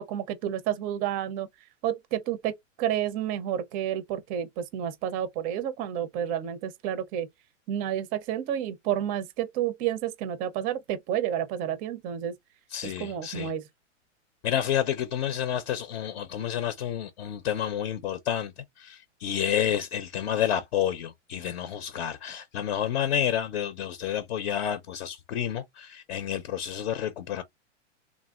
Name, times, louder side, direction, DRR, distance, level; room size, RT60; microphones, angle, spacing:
voice 1, 0.0-1.5 1.8-7.3 7.7-12.3 12.8-13.7, right 10 dB, 25° right, 0.4 m, -30 dB
voice 2, 12.7-13.5 14.4-27.4, left 10 dB, 55° left, 0.6 m, -30 dB
3.1 x 2.5 x 2.3 m
hypercardioid pair, 125°, 37 cm